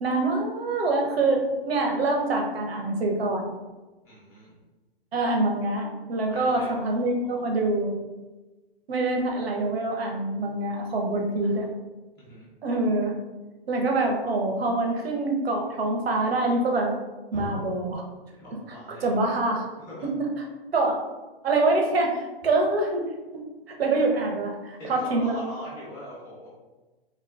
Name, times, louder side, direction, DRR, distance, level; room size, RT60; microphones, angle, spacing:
voice 1, 0.0-3.5 5.1-8.0 8.9-11.7 12.6-13.2 13.7-16.9 17.3-18.0 19.0-19.7 20.0-20.5 20.7-21.0 21.4-23.4 23.7-25.4, right 2 dB, 85° right, 1 dB, 0.8 m, -25 dB
voice 2, 4.0-4.5 6.3-6.9 11.4-11.6 12.2-12.5 17.3-17.6 18.4-19.2 19.8-20.1 24.8-26.5, left 1 dB, 10° left, -7 dB, 0.3 m, -40 dB
3.7 x 2.3 x 2.3 m, 1.2 s
hypercardioid pair, 145°, 30 cm